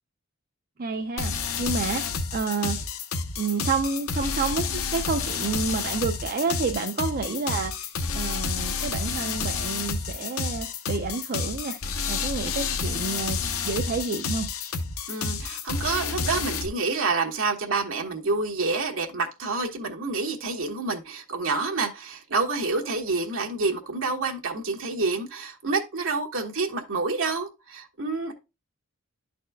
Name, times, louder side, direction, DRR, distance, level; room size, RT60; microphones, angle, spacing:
voice 1, 0.8-1.3 1.6-2.0 2.3-2.8 3.4-11.8 12.1-13.4 13.6-14.5, right 4 dB, 45° right, 0.6 m, -29 dB
sound 1, 1.2-16.7, left 5 dB, 75° left, 0.7 m, -30 dB
voice 2, 15.1-28.3, right 3 dB, 65° right, 1.3 m, -28 dB
11.0 x 4.2 x 2.2 m
head